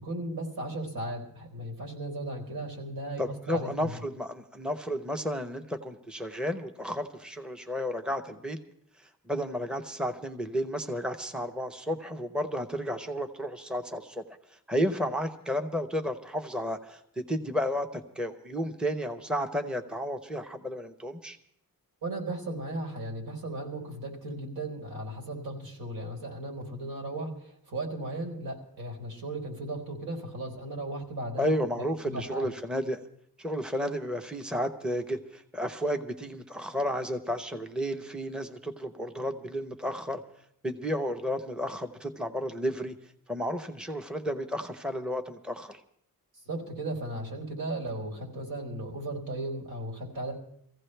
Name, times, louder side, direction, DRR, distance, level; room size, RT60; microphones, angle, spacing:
voice 1, 0.0-3.9 22.0-32.5 46.4-50.3, right 1 dB, 85° right, -1 dB, 4.5 m, -36 dB
voice 2, 3.2-8.6 9.3-14.2 14.7-21.4 31.4-33.0 33.4-40.2 40.6-42.9 43.3-45.8, equal, ahead, 6 dB, 0.9 m, -32 dB
24.5 x 15.5 x 3.3 m, 0.69 s
wide cardioid pair, 140°, 35 cm